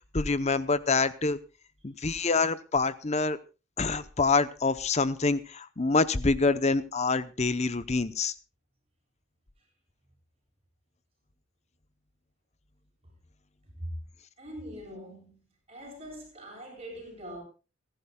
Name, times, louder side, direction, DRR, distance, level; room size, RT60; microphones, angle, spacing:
voice 1, 0.1-1.4 1.8-3.4 3.8-8.3, left 3 dB, 30° left, 0.7 m, -26 dB
voice 2, 13.6-13.9 14.4-15.4 15.7-17.4, equal, 25° right, 7.5 m, -42 dB
29.5 x 11.0 x 2.3 m
head